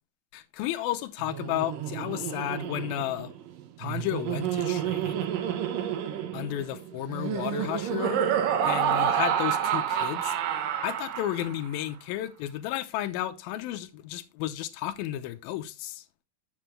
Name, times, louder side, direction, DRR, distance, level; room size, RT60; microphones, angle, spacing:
voice 1, 0.3-3.3 3.8-5.3 6.3-8.2 8.6-10.3 10.8-16.0, left 13 dB, 85° left, 2.5 m, -33 dB
Laughter, 1.2-11.7, right 9 dB, 75° right, 2.6 m, -29 dB
8.8 x 6.9 x 3.2 m
omnidirectional pair, 4.1 m